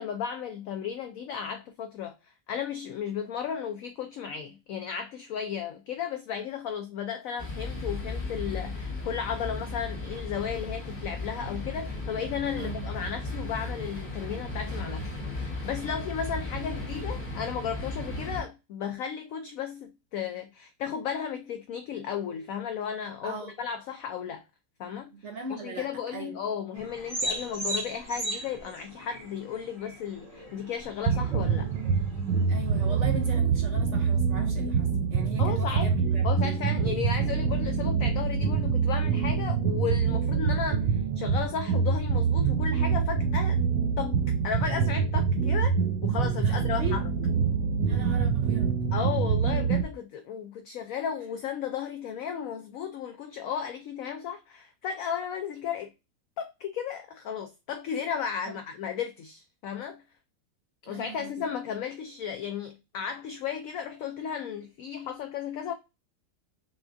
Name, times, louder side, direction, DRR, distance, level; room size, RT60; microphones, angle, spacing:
voice 1, 0.0-24.4 24.8-25.1 25.5-31.7 34.9-35.1 35.4-35.9 36.2-43.6 44.0-47.1 47.9-48.0 48.9-55.9 56.4-60.0 60.8-65.7, left 8 dB, 75° left, 0.8 m, -34 dB
sound 1, 7.4-18.4, left 2 dB, 30° left, 1.2 m, -35 dB
voice 2, 12.6-12.9 23.2-23.5 25.2-25.9 26.1-26.4 32.5-36.6 46.4-47.0 47.8-48.7 58.5-58.6 60.9-61.5, right 4 dB, 60° right, 0.8 m, -39 dB
sound 2, 26.7-33.4, right 1 dB, 25° right, 1.0 m, -38 dB
sound 3, 31.1-49.8, right 6 dB, 80° right, 1.2 m, -25 dB
5.9 x 2.3 x 2.5 m
omnidirectional pair, 1.9 m